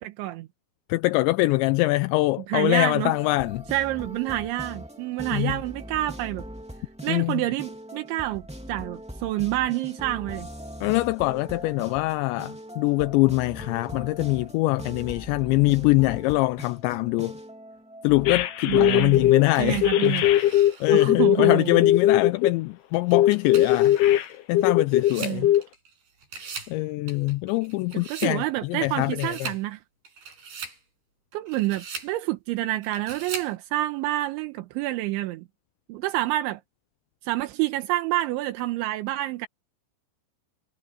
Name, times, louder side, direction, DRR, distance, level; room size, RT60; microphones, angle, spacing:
voice 1, 0.0-0.5 2.5-3.2 3.7-6.4 7.0-8.4 8.7-10.5 18.6-19.3 19.6-20.3 20.9-21.9 25.2-25.5 27.9-29.8 31.3-35.4 35.9-36.6 37.2-39.5, right 16 dB, 80° right, 3.2 m, -28 dB
voice 2, 0.9-3.6 5.3-5.6 7.1-7.4 10.8-17.3 18.0-20.3 20.8-24.0 24.5-25.5 26.7-29.5, left 20 dB, 80° left, 2.7 m, -24 dB
sound 1, 3.1-19.9, equal, 5° right, 1.1 m, -41 dB
sound 2, 18.3-19.4 19.8-22.5 23.1-25.1 25.4-25.6, left 12 dB, 65° left, 2.9 m, -19 dB
sound 3, 19.6-21.1 21.7-21.8 22.9-25.9 26.2-26.8 27.1-28.4 28.8-29.6 30.1-30.8 31.3-32.1 32.8-33.5, right 5 dB, 55° right, 7.8 m, -40 dB
omnidirectional pair, 5.6 m